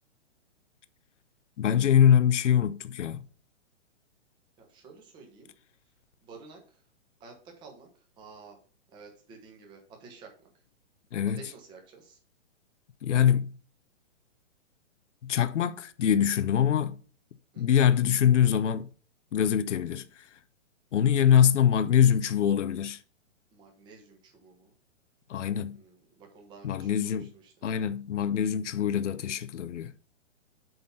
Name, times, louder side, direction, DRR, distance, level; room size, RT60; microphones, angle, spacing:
voice 1, 1.6-3.2 11.1-11.4 13.0-13.6 15.2-17.0 17.6-18.9 19.3-20.3 20.9-23.0 25.3-25.8 26.6-27.3 27.6-29.9, left 9 dB, 75° left, 0.8 m, -24 dB
voice 2, 4.6-5.5 6.2-6.8 7.2-8.6 8.9-10.5 11.3-12.2 17.5-17.8 23.5-24.7 25.7-27.7, right 4 dB, 10° right, 1.2 m, -51 dB
7.8 x 4.1 x 5.6 m
hypercardioid pair, 165°, 37 cm